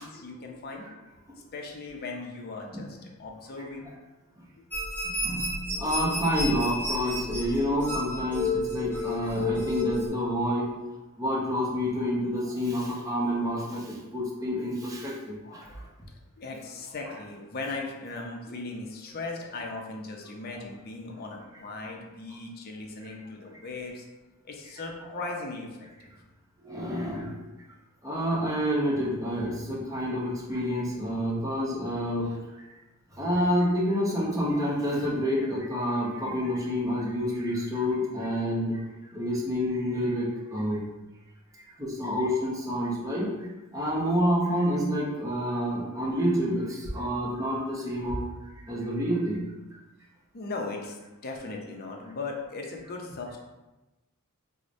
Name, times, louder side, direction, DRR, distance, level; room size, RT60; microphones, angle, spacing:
voice 1, 0.0-3.9 5.6-5.7 9.3-9.8 12.0-12.6 13.6-13.8 14.4-14.6 15.4-15.8 16.1-24.0 24.4-26.1 26.8-26.9 50.3-51.0 51.2-53.4, left 3 dB, 45° left, 1 dB, 0.5 m, -39 dB
sound 1, 4.7-10.1, left 2 dB, 10° left, 1.0 m, -31 dB
voice 2, 5.1-10.7 11.2-15.6 26.6-27.4 28.0-32.3 33.2-38.8 39.1-40.8 41.8-43.3 43.7-48.2 48.7-49.4, equal, 15° right, -4 dB, 0.6 m, -28 dB
4.6 x 2.0 x 2.6 m, 1.1 s
head